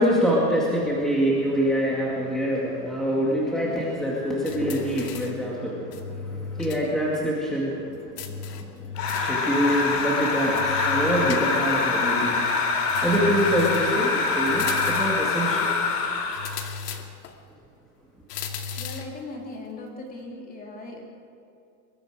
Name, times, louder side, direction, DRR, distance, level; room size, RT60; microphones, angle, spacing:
voice 1, 0.0-12.4 13.0-15.8, equal, ahead, -5 dB, 2.2 m, -25 dB
sound 1, 4.5-5.4 5.9-6.9 7.1-7.2 8.2-9.4 10.6-11.8 12.9-14.0 14.5-15.3 16.3-17.4 18.3-19.2, left 6 dB, 90° left, 2.4 m, -35 dB
sound 2, 8.9-16.6, left 4 dB, 70° left, 4.0 m, -25 dB
voice 2, 18.8-21.0, left 2 dB, 20° left, 0 dB, 3.0 m, -38 dB
24.0 x 21.5 x 5.0 m, 2.6 s
supercardioid pair, 170°, 47 cm